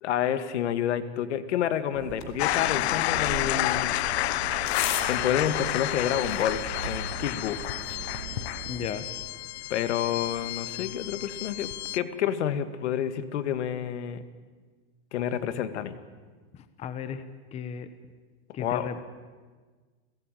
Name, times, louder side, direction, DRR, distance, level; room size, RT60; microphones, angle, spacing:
voice 1, 0.0-3.9 5.1-7.6 9.7-14.2 15.1-16.0 18.6-18.9, left 9 dB, 90° left, 11 dB, 2.1 m, -29 dB
sound 1, 1.9-8.9, right 8 dB, 70° right, 2.2 m, -41 dB
sound 2, 2.1-7.1, left 9 dB, 35° left, 2.9 m, -39 dB
sound 3, 2.4-12.0, left 16 dB, 70° left, 0.7 m, -30 dB
voice 2, 8.7-9.1 16.5-17.2 17.5-17.9 18.5-19.0, left 8 dB, 20° left, 11 dB, 1.0 m, -35 dB
29.5 x 17.0 x 9.3 m, 1.4 s
supercardioid pair, 170°, 33 cm